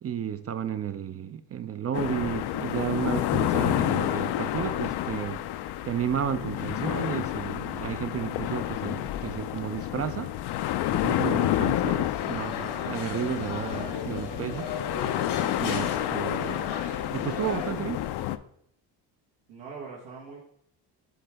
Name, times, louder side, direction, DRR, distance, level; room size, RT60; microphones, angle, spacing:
voice 1, 0.0-5.4 5.8-10.3 10.9-14.7 15.6-16.7 17.1-18.1, right 9 dB, 35° right, 0.4 m, -32 dB
sound 1, 1.9-18.4, left 13 dB, 60° left, 0.5 m, -29 dB
voice 2, 11.1-11.8 19.5-20.4, right 5 dB, 90° right, 1.3 m, -44 dB
sound 2, 12.1-17.7, left 5 dB, 85° left, 1.5 m, -35 dB
7.9 x 3.8 x 3.4 m
cardioid pair, 90°, 45 cm